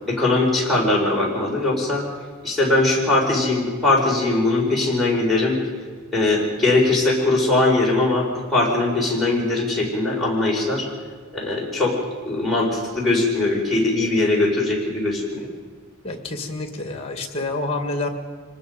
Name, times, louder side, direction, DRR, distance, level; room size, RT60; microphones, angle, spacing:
voice 1, 0.1-2.1 2.4-5.6 6.1-10.9 11.3-12.0 12.3-15.5, left 2 dB, ahead, -5 dB, 4.8 m, -20 dB
voice 2, 16.0-18.1, left 2 dB, 30° left, 6 dB, 2.0 m, -28 dB
25.5 x 19.5 x 5.3 m, 1.5 s
head